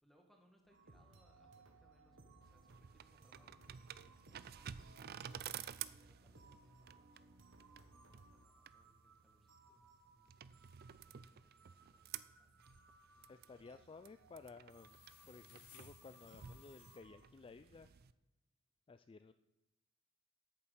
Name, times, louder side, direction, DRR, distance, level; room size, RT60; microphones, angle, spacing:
voice 1, 0.0-5.4 6.0-12.7, equal, ahead, 1 dB, 1.6 m, -73 dB
sound 1, 0.7-17.2, right 3 dB, 60° right, 1.4 m, -65 dB
sound 2, 2.4-18.1, right 9 dB, 45° right, 0.4 m, -53 dB
voice 2, 13.3-15.0 15.3-17.9 18.9-19.3, left 4 dB, 25° left, 11 dB, 0.3 m, -56 dB
sound 3, 14.7-17.0, left 7 dB, 90° left, 2.0 m, -62 dB
8.9 x 7.0 x 8.1 m, 0.97 s
head